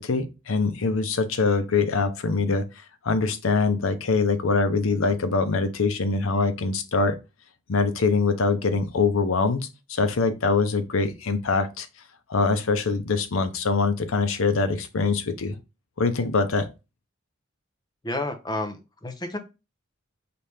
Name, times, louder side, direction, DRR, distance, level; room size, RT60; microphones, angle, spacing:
voice 1, 0.0-2.6 3.0-7.2 7.7-11.9 12.3-15.6 16.0-16.7, left 4 dB, 85° left, 0.7 m, -23 dB
voice 2, 18.0-19.4, left 2 dB, 20° left, 0.7 m, -31 dB
4.2 x 3.2 x 3.4 m
head